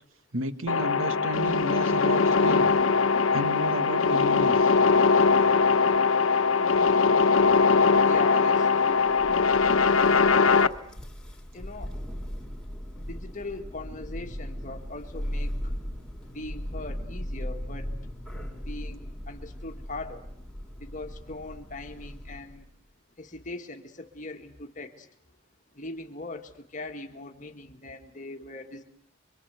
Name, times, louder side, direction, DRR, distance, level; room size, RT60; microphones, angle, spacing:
voice 1, 0.3-2.7 3.3-4.7, right 1 dB, 80° right, 11 dB, 1.7 m, -32 dB
sound 1, 0.7-10.7, left 4 dB, 85° left, 1.0 m, -21 dB
voice 2, 8.1-9.2 10.0-10.7 11.5-11.9 13.0-15.7 16.3-17.9 18.7-20.2 20.8-22.6 23.2-25.1 25.8-28.8, left 2 dB, 35° left, 6 dB, 1.8 m, -40 dB
Thunder, 9.0-22.7, equal, 5° left, 3.9 m, -38 dB
26.0 x 24.5 x 8.2 m, 0.67 s
head